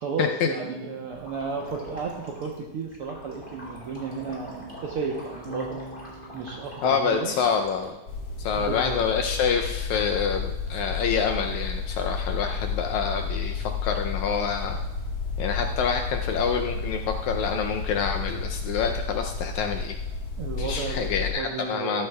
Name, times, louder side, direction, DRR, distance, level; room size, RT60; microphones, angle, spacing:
voice 1, 0.0-5.8 6.3-7.3 8.6-9.0 20.4-21.1 21.4-22.1, right 5 dB, 75° right, -1 dB, 1.3 m, -33 dB
sound 1, 1.1-7.9, left 1 dB, 15° left, 2.7 m, -44 dB
Electric guitar / Bass guitar, 5.4-11.8, right 2 dB, 45° right, 0.8 m, -47 dB
voice 2, 6.8-8.0 8.4-14.8 15.4-20.0 20.6-22.1, left 6 dB, 80° left, 4 dB, 1.7 m, -27 dB
sound 2, 8.1-21.3, left 4 dB, 55° left, 2.3 m, -31 dB
13.5 x 13.0 x 2.2 m, 1.0 s
omnidirectional pair, 3.7 m